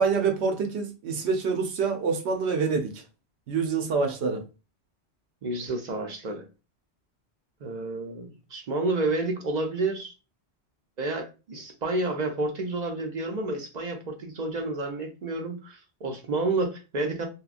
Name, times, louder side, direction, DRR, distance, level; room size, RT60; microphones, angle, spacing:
voice 1, 0.0-3.0 3.5-4.4, right 5 dB, 80° right, 0.9 m, -26 dB
voice 2, 5.4-6.5 7.6-10.1 11.0-17.3, right 2 dB, 50° right, 0.5 m, -30 dB
2.9 x 2.3 x 2.4 m
omnidirectional pair, 1.1 m